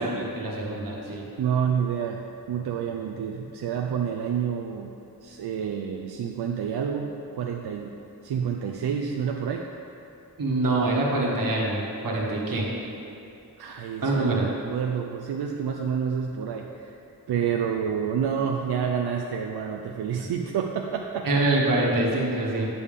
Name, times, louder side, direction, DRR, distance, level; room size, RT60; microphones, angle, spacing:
voice 1, 0.0-1.3 10.4-12.7 14.0-14.4 21.2-22.7, right 2 dB, 60° right, -3 dB, 1.4 m, -25 dB
voice 2, 1.4-4.9 5.2-8.0 8.2-9.7 13.6-16.9 17.3-21.4, right 7 dB, 85° right, 1 dB, 0.5 m, -29 dB
8.2 x 6.9 x 3.6 m, 2.7 s
wide cardioid pair, 165°, 38 cm